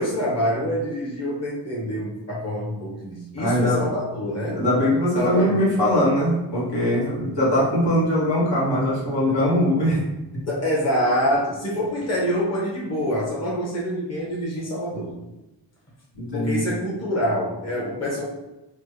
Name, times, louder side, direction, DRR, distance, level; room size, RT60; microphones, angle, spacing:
voice 1, 0.0-4.6 5.1-5.7 9.2-9.3 10.5-15.1 16.3-18.2, equal, 35° left, -4 dB, 1.2 m, -26 dB
voice 2, 3.4-3.8 4.5-10.0 10.3-10.5 16.1-16.7, left 1 dB, 65° left, -7 dB, 1.5 m, -21 dB
3.3 x 2.2 x 3.3 m, 0.98 s
cardioid pair, 45°, 45 cm